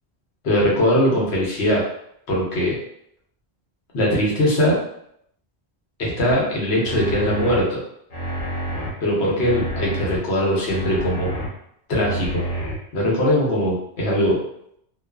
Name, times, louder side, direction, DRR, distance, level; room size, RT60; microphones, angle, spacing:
voice 1, 0.4-1.8 2.3-2.8 3.9-4.8 6.0-7.8 9.0-11.3 11.9-12.4 12.9-14.4, equal, 85° left, -4 dB, 1.1 m, -20 dB
sound 1, 6.3-6.4 6.8-7.6 8.1-8.9 9.4-10.2 10.7-11.5 11.9-12.7, right 1 dB, 40° left, 0.7 m, -28 dB
2.4 x 2.3 x 2.2 m, 0.72 s
omnidirectional pair, 1.1 m